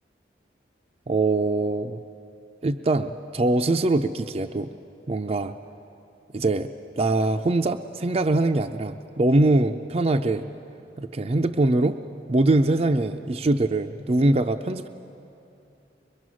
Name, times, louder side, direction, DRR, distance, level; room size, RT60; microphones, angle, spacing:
voice 1, 1.1-2.0 2.6-4.7 5.1-5.5 6.3-6.7 7.0-10.5 11.0-12.0 12.3-14.9, right 2 dB, 35° right, 5 dB, 0.4 m, -23 dB
23.0 x 23.0 x 6.3 m, 2.8 s
head